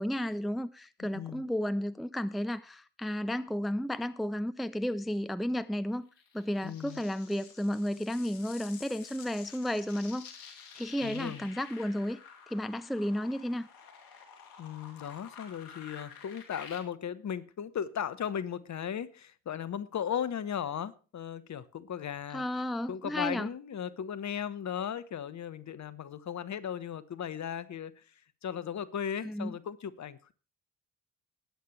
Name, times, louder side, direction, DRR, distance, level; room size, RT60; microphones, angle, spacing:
voice 1, 0.0-6.0 6.3-12.2 12.5-13.7 22.3-23.5 29.2-29.5, equal, ahead, 0.6 m, -33 dB
voice 2, 1.0-1.4 6.6-7.0 11.0-11.5 14.6-22.4 22.9-28.0 28.4-30.3, left 8 dB, 45° left, 1.2 m, -37 dB
sound 1, 6.2-16.8, left 6 dB, 65° left, 2.8 m, -50 dB
19.5 x 8.7 x 3.3 m
figure-of-eight pair, 40°, 38 cm